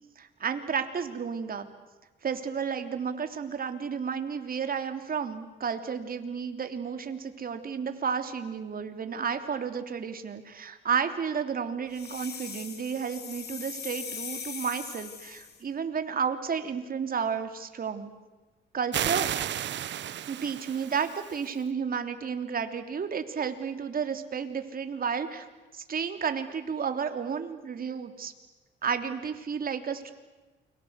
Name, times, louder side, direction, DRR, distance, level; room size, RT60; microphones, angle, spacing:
voice 1, 0.2-1.7 2.2-18.1 18.7-19.3 20.3-25.4 25.7-28.3 28.8-30.1, right 6 dB, 45° right, 7 dB, 3.2 m, -32 dB
sound 1, 11.9-15.6, left 6 dB, 55° left, 5.2 m, -40 dB
sound 2, 18.9-21.5, right 11 dB, 65° right, 1.1 m, -33 dB
29.0 x 24.0 x 8.3 m, 1.2 s
cardioid pair, 90°, 20 cm